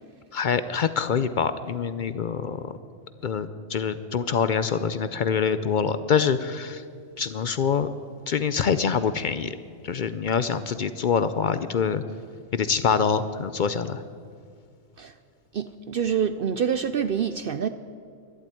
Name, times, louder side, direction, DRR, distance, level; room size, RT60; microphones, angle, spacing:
voice 1, 0.3-2.6 3.2-6.8 7.2-7.9 8.3-9.6 9.8-12.0 12.5-14.0, left 6 dB, 65° left, 13 dB, 0.4 m, -25 dB
voice 2, 15.5-17.7, right 7 dB, 65° right, 11 dB, 0.5 m, -26 dB
12.0 x 11.5 x 9.1 m, 2.2 s
omnidirectional pair, 1.4 m